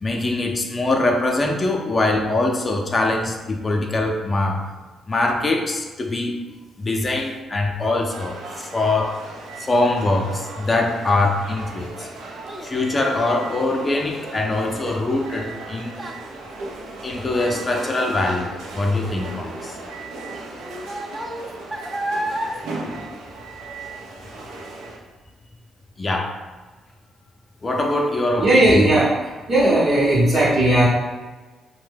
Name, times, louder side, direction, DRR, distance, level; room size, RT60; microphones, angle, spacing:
voice 1, 0.0-4.7 5.1-6.4 6.8-9.2 9.6-12.1 12.6-16.0 17.0-19.8 26.0-26.4 27.6-28.9, left 2 dB, 35° left, 2 dB, 0.5 m, -23 dB
sound 1, 8.1-25.0, right 3 dB, 80° right, 0.5 m, -37 dB
Child speech kid speaking, 11.9-23.9 24.3-24.7 25.2-25.3, right 1 dB, 20° right, 0.4 m, -35 dB
voice 2, 28.4-29.1 29.5-30.9, right 1 dB, 50° right, -8 dB, 0.8 m, -16 dB
2.6 x 2.1 x 3.4 m, 1.3 s
supercardioid pair, 55°, 0 cm